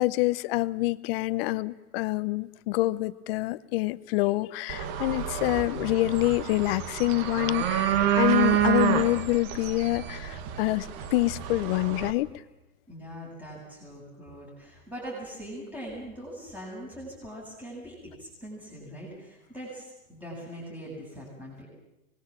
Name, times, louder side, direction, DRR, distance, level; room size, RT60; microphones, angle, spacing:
voice 1, 0.0-12.3, left 19 dB, 40° left, 17 dB, 0.9 m, -26 dB
sound 1, 4.7-12.1, right 10 dB, 45° right, 1.9 m, -28 dB
voice 2, 12.9-21.7, equal, 5° right, -5 dB, 7.8 m, -42 dB
24.5 x 20.5 x 7.5 m, 0.93 s
hypercardioid pair, 140°, 43 cm